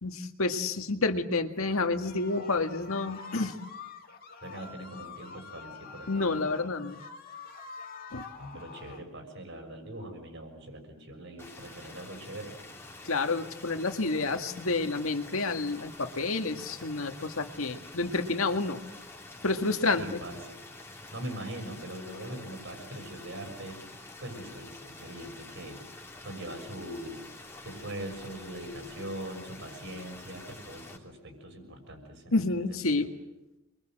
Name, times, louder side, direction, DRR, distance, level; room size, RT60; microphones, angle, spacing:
voice 1, 0.0-3.5 6.1-7.0 8.1-8.2 13.0-18.8 19.4-20.2 32.3-33.1, left 3 dB, 90° left, 6 dB, 1.9 m, -29 dB
sound 1, 1.7-9.1, left 5 dB, 45° left, 2.5 m, -46 dB
voice 2, 4.4-6.5 8.4-12.6 20.0-20.6 21.1-27.3 27.6-33.1, right 1 dB, 60° right, 5 dB, 6.5 m, -42 dB
sound 2, 11.4-31.0, left 2 dB, 10° left, 3.2 m, -48 dB
28.5 x 23.0 x 7.8 m, 1.0 s
head